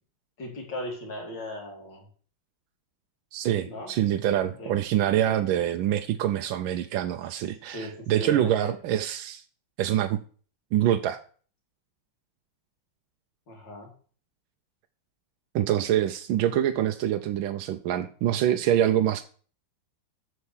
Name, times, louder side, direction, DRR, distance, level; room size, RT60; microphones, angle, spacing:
voice 1, 0.4-2.1 3.7-3.9 4.6-4.7 5.3-5.4 7.7-8.8 13.5-13.9, left 1 dB, 55° left, 1 dB, 3.4 m, -37 dB
voice 2, 3.3-9.4 9.8-10.2 10.7-11.2 15.5-19.2, right 11 dB, 75° right, 7 dB, 1.3 m, -25 dB
8.1 x 5.8 x 7.2 m, 0.43 s
omnidirectional pair, 2.4 m